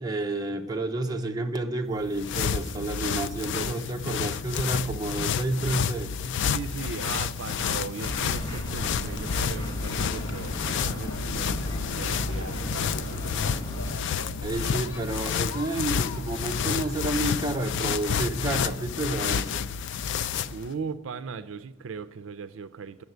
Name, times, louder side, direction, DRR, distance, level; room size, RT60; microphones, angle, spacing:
voice 1, 0.0-6.1 14.4-19.7, right 2 dB, 20° right, 3 dB, 0.7 m, -30 dB
sound 1, 1.9-20.7, left 7 dB, 60° left, 0.3 m, -30 dB
voice 2, 6.5-11.6 11.9-13.4 20.5-23.0, right 5 dB, 65° right, 12 dB, 0.4 m, -38 dB
sound 2, 8.0-13.9, equal, 20° left, 1.2 m, -34 dB
Conversation, 9.7-18.8, left 2 dB, 85° left, 0.9 m, -42 dB
10.5 x 7.3 x 7.9 m, 1.1 s
head